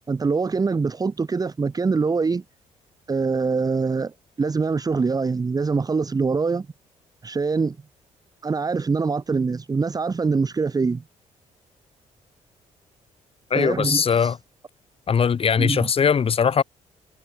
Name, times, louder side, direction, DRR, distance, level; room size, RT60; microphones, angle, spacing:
voice 1, 0.1-2.4 3.1-6.7 7.2-7.8 8.4-11.0 13.5-14.3 15.6-15.9, right 4 dB, 30° right, 1.4 m, -24 dB
voice 2, 13.5-14.4 15.1-16.6, left 7 dB, 45° left, 2.2 m, -20 dB
cardioid pair, 85°, 13 cm